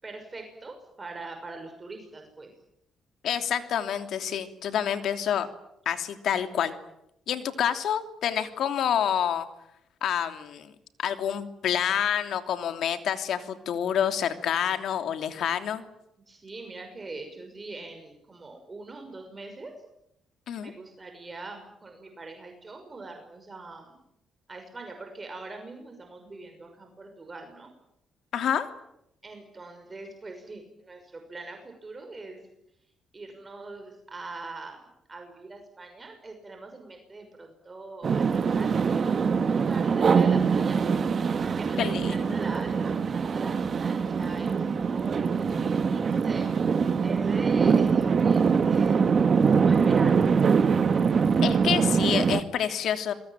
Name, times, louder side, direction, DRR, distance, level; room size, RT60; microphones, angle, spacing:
voice 1, 0.0-2.5 16.3-19.8 20.6-24.0 24.5-27.7 29.2-32.4 33.1-34.8 35.1-40.8 41.4-50.3, right 3 dB, 25° right, 4 dB, 6.1 m, -42 dB
voice 2, 3.2-5.5 5.8-6.7 7.3-9.5 10.0-10.7 11.0-15.8 20.5-20.7 28.3-28.7 41.8-42.2 51.4-53.1, left 9 dB, 70° left, 8 dB, 3.0 m, -28 dB
sound 1, 38.0-52.4, right 6 dB, 45° right, 1.7 m, -23 dB
28.5 x 22.0 x 9.2 m, 0.81 s
cardioid pair, 90°, 0 cm